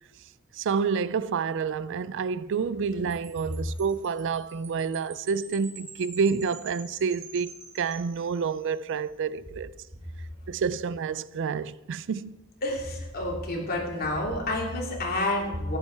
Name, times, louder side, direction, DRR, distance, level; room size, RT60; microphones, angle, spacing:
voice 1, 0.5-9.7 10.5-12.4, right 5 dB, 60° right, 0.4 m, -29 dB
Wind chime, 3.1-8.8, right 4 dB, 35° right, 2.5 m, -47 dB
voice 2, 12.6-15.8, left 1 dB, 45° left, 3.0 m, -29 dB
14.5 x 11.5 x 4.6 m
head